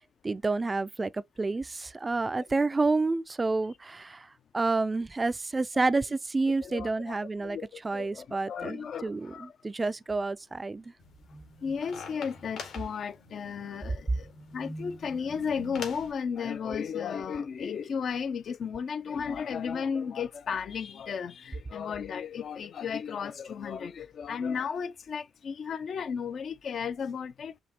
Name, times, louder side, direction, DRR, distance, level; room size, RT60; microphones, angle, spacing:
voice 1, 0.2-7.6 7.8-10.8, right 3 dB, 25° right, 0.3 m, -29 dB
voice 2, 6.6-9.5 11.6-27.5, left 6 dB, 55° left, 0.4 m, -34 dB
sound 1, 11.0-16.1, left 3 dB, 75° left, 1.8 m, -44 dB
5.2 x 3.1 x 2.8 m
cardioid pair, 90°, 0 cm